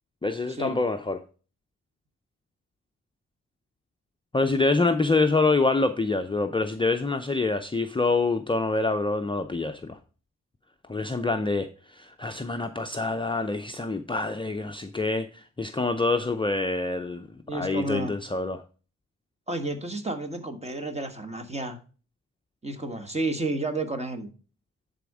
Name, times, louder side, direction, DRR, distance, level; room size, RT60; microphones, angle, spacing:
voice 1, 0.2-1.2 4.3-10.0 10.9-18.6, left 3 dB, 15° left, 0.6 m, -26 dB
voice 2, 17.5-18.1 19.5-21.8 22.6-24.3, right 2 dB, 20° right, 1.6 m, -31 dB
10.5 x 4.2 x 4.8 m
wide cardioid pair, 100°, 32 cm